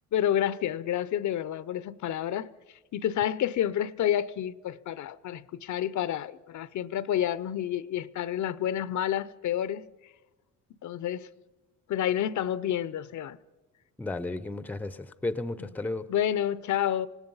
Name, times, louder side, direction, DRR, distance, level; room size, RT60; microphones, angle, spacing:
voice 1, 0.1-2.5 2.9-9.9 10.8-11.3 11.9-13.4 16.1-17.1, left 10 dB, 60° left, 0.7 m, -29 dB
voice 2, 14.0-16.1, left 2 dB, 5° left, 0.6 m, -33 dB
25.5 x 18.5 x 5.5 m
cardioid pair, 115°, 34 cm